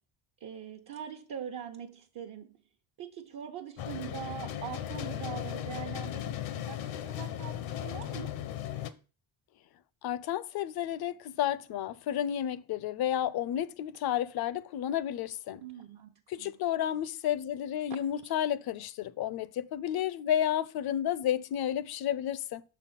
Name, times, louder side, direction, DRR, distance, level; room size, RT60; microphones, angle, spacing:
voice 1, 0.4-2.6 3.0-8.3 15.6-16.5 16.8-16.9 17.9-18.4, right 9 dB, 55° right, 1.0 m, -43 dB
sound 1, 3.8-8.9, left 11 dB, 80° left, 0.8 m, -37 dB
voice 2, 10.0-15.6 16.3-22.6, left 10 dB, 55° left, 0.6 m, -31 dB
6.3 x 4.2 x 5.7 m
cardioid pair, 85°, 45 cm